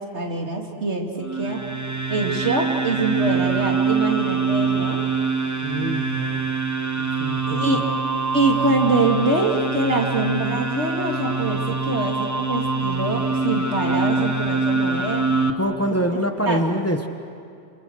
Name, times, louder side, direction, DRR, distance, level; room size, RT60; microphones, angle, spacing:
voice 1, 0.0-1.6 2.1-5.0 7.5-7.8 8.3-15.2 16.5-16.6, right 2 dB, 85° right, 0 dB, 3.1 m, -24 dB
sound 1, 1.2-15.5, right 4 dB, 15° right, 1.1 m, -24 dB
voice 2, 5.6-6.5 7.0-8.0 15.5-17.1, equal, 15° left, 5 dB, 1.2 m, -26 dB
28.5 x 27.5 x 6.5 m, 2.4 s
omnidirectional pair, 1.1 m